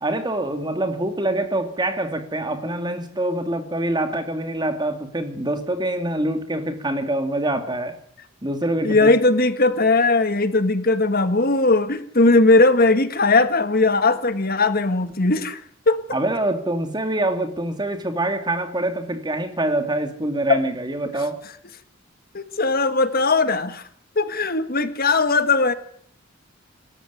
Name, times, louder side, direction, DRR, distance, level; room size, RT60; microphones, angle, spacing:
voice 1, 0.0-8.0 8.4-9.1 16.1-21.4, right 1 dB, 20° right, 2.6 m, -25 dB
voice 2, 8.8-15.6 15.9-16.0 20.5-20.6 22.3-23.8 24.1-25.7, left 3 dB, 45° left, 1.6 m, -18 dB
26.0 x 13.5 x 9.8 m
head